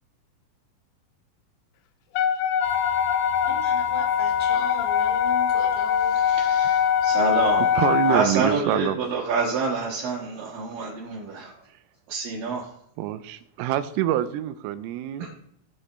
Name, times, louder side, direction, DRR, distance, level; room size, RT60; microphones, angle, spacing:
Wind instrument woodwind instrument, 2.2-8.2, left 8 dB, 90° left, 3.4 m, -23 dB
sound 1, 2.6-8.2, left 9 dB, 45° left, 2.5 m, -30 dB
voice 1, 3.4-6.1 8.5-9.0, left 1 dB, 35° right, -1 dB, 0.9 m, -38 dB
voice 2, 6.1-7.7 8.0-11.6 12.1-12.7 15.2-15.3, right 4 dB, 65° right, -3 dB, 2.3 m, -27 dB
voice 3, 7.8-9.0 13.0-15.3, right 12 dB, 90° right, 11 dB, 3.3 m, -26 dB
17.5 x 7.1 x 3.3 m, 0.74 s
omnidirectional pair, 5.9 m